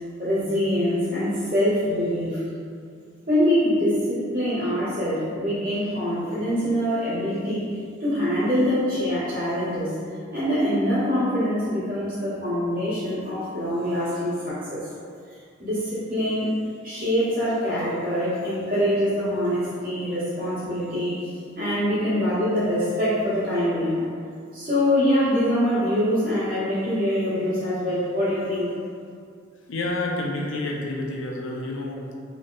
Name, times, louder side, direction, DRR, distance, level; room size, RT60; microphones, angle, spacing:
voice 1, 0.2-2.4 3.3-7.7 8.0-9.9 10.3-14.8 15.6-16.6 16.8-24.1 24.5-28.7, equal, 45° right, -13 dB, 1.3 m, -24 dB
voice 2, 29.7-32.1, left 2 dB, 70° left, -2 dB, 0.4 m, -29 dB
3.2 x 2.1 x 2.4 m, 2.3 s
head